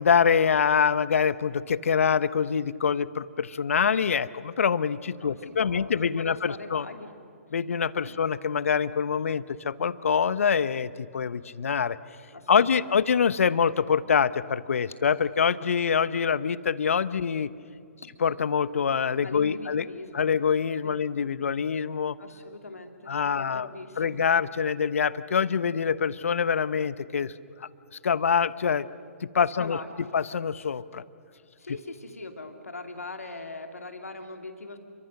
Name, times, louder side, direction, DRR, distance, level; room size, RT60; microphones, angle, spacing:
voice 1, 0.0-6.9 7.5-12.0 12.5-17.5 18.2-19.8 20.1-22.2 23.1-23.7 24.0-27.3 28.0-28.9 29.2-29.8 30.1-31.0, left 6 dB, 65° left, 17 dB, 0.9 m, -25 dB
voice 2, 5.2-7.1 8.0-8.2 12.3-13.0 18.0-18.1 19.2-20.3 20.8-21.0 22.2-24.2 29.6-30.1 31.6-34.8, left 3 dB, 80° left, 6 dB, 2.7 m, -41 dB
30.0 x 24.5 x 6.7 m, 2.6 s
figure-of-eight pair, 125°, 8 cm